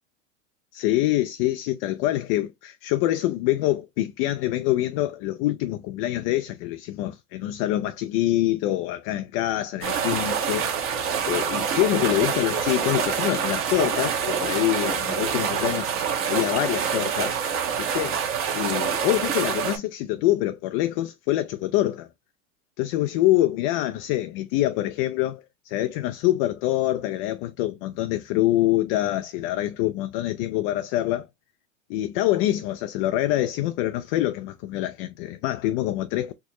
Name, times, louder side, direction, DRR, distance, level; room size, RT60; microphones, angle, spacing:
voice 1, 0.7-10.7 11.2-15.9 16.3-17.4 17.8-18.2 18.5-22.1 22.8-31.3 31.9-36.3, left 15 dB, 45° left, 0.5 m, -25 dB
sound 1, 9.8-19.8, right 7 dB, 35° right, 1.1 m, -26 dB
4.4 x 2.2 x 2.8 m
hypercardioid pair, 115°, 40 cm